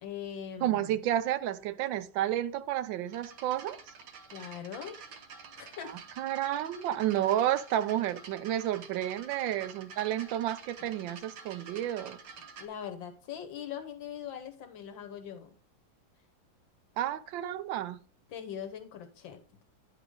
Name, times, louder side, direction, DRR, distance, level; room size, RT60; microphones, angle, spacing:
voice 1, 0.0-0.9 4.3-5.0 5.6-6.0 12.6-15.5 18.3-19.4, left 9 dB, 80° left, 1.8 m, -41 dB
voice 2, 0.6-3.9 5.8-12.2 17.0-18.0, right 12 dB, 80° right, 1.3 m, -31 dB
sound 1, 3.1-12.7, right 5 dB, 65° right, 1.4 m, -49 dB
10.0 x 4.9 x 3.7 m
omnidirectional pair, 2.1 m